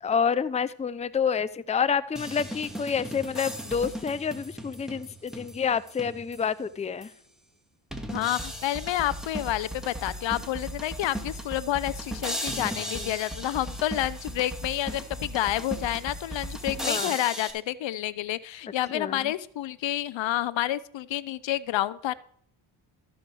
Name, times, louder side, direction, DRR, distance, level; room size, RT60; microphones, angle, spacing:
voice 1, 0.0-7.1 12.9-13.1 16.8-17.1 18.9-19.3, left 6 dB, 15° left, 14 dB, 0.5 m, -28 dB
sound 1, 2.2-6.6 7.0-7.1 7.9-17.5, equal, ahead, 2.1 m, -36 dB
voice 2, 8.1-22.1, left 13 dB, 65° left, 18 dB, 0.6 m, -29 dB
13.5 x 5.1 x 6.1 m, 0.65 s
supercardioid pair, 60°, 48 cm